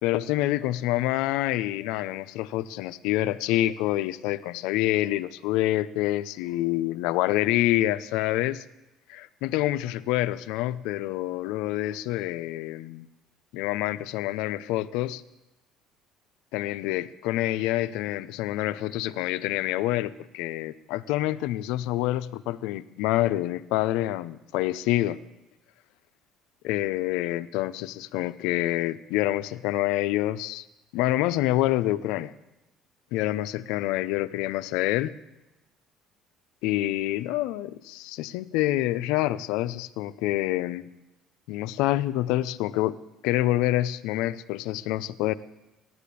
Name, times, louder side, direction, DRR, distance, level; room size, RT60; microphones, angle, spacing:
voice 1, 0.0-8.6 9.1-13.1 13.5-15.2 16.5-25.2 26.6-30.6 30.9-32.3 33.1-35.1 36.6-40.9 41.5-43.0 43.2-45.3, left 15 dB, 80° left, 13 dB, 0.6 m, -27 dB
14.5 x 11.0 x 8.4 m, 1.0 s
supercardioid pair, 100°, 0 cm